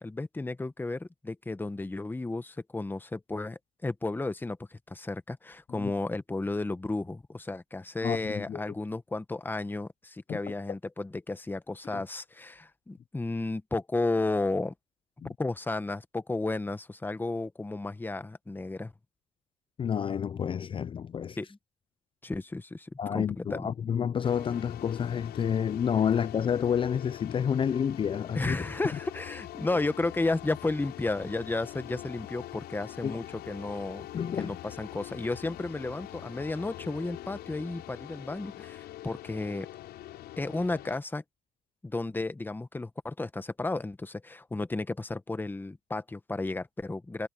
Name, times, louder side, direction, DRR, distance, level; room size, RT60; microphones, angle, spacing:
voice 1, 0.0-14.7 15.4-18.9 21.4-21.5 22.2-23.7 28.3-34.0 34.4-39.7 40.4-41.2 41.8-47.3, left 2 dB, 10° left, 1.2 m, -33 dB
voice 2, 8.0-8.6 10.3-10.4 11.9-12.0 15.2-15.3 19.8-21.4 23.0-28.6 33.0-33.2 34.1-34.6, left 8 dB, 30° left, 0.4 m, -29 dB
sound 1, 24.2-41.0, left 14 dB, 75° left, 6.8 m, -44 dB
cardioid pair, 110°, 17 cm